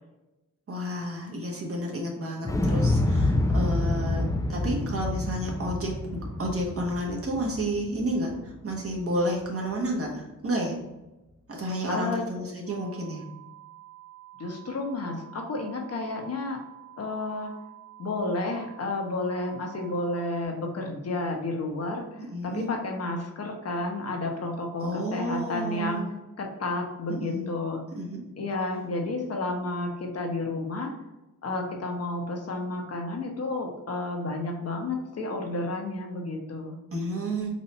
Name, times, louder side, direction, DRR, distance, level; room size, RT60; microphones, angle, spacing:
voice 1, 0.7-10.8 11.5-13.2 22.2-22.7 24.8-26.1 27.1-27.5 28.0-28.2 36.9-37.5, right 1 dB, 45° right, -2 dB, 1.3 m, -31 dB
Explosion, 2.4-8.5 8.8-8.9, left 2 dB, 10° left, 0.4 m, -27 dB
voice 2, 11.9-12.2 14.4-16.6 17.0-17.5 18.0-26.0 26.4-27.8 28.4-30.9 31.4-36.8, left 2 dB, 50° left, 2 dB, 1.0 m, -31 dB
sound 1, 12.7-20.4, right 15 dB, 80° right, 0.6 m, -49 dB
4.1 x 2.6 x 4.3 m, 1.0 s
cardioid pair, 95°, 33 cm